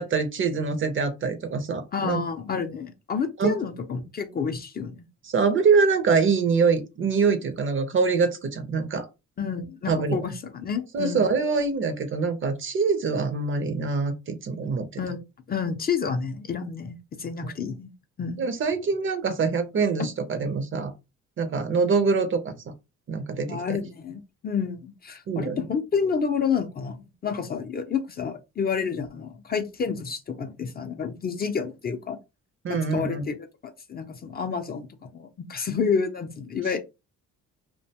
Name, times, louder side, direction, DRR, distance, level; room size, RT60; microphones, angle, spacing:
voice 1, 0.0-2.2 3.4-3.5 5.2-9.1 9.9-10.2 10.9-14.8 17.4-17.5 18.4-20.9 21.4-22.7 23.1-23.8 25.3-25.6 32.6-33.2, right 5 dB, 40° right, 0.5 m, -24 dB
voice 2, 1.9-5.0 9.4-11.3 15.0-15.2 15.5-17.9 18.2-18.4 20.0-20.1 23.5-32.2 32.7-36.8, left 6 dB, 30° left, 0.4 m, -29 dB
2.5 x 2.2 x 2.7 m
cardioid pair, 90°, 30 cm